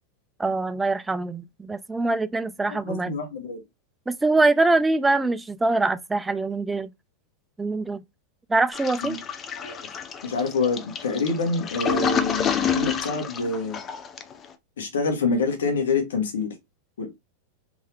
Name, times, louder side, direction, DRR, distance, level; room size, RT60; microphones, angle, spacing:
voice 1, 0.4-3.1 4.1-6.9 7.6-8.0 8.5-9.2, right 3 dB, 10° right, 0.4 m, -23 dB
voice 2, 2.7-3.6 9.0-9.2 9.6-9.8 10.2-13.8 14.8-16.6 17.0-17.1, left 4 dB, 80° left, 1.3 m, -26 dB
Toilet flush, 8.7-14.5, left 7 dB, 30° left, 0.6 m, -28 dB
3.7 x 2.7 x 3.3 m
hypercardioid pair, 110°, 0 cm